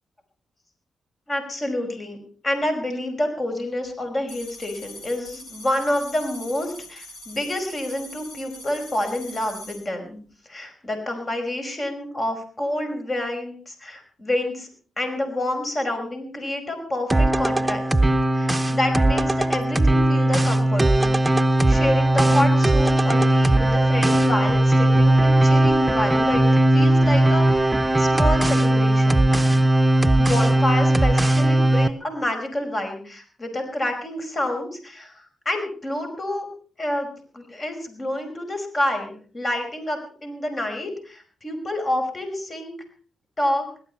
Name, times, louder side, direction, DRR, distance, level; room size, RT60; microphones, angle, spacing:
voice 1, 1.3-2.2 2.4-10.2 10.5-14.7 15.0-17.8 18.3-21.2 21.7-29.3 30.2-36.5 36.8-42.7 43.4-43.7, left 1 dB, 35° left, 5 dB, 5.4 m, -28 dB
sound 1, 4.3-9.8, left 1 dB, 85° left, 5.7 m, -42 dB
sound 2, 17.1-31.9, right 1 dB, 15° right, 0.9 m, -18 dB
17.5 x 13.0 x 5.6 m, 0.42 s
cardioid pair, 60°, 0 cm